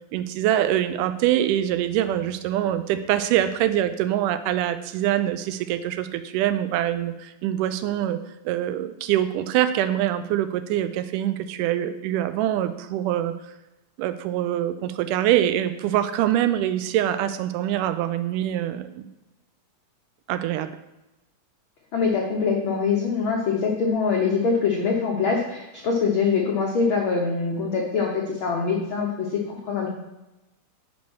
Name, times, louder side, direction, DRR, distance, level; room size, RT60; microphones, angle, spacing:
voice 1, 0.1-8.2 8.5-13.3 14.0-19.1 20.3-20.7, right 12 dB, 85° right, 11 dB, 2.1 m, -24 dB
voice 2, 21.9-29.9, left 5 dB, 75° left, -1 dB, 1.1 m, -24 dB
6.7 x 5.2 x 6.0 m, 1.0 s
omnidirectional pair, 3.6 m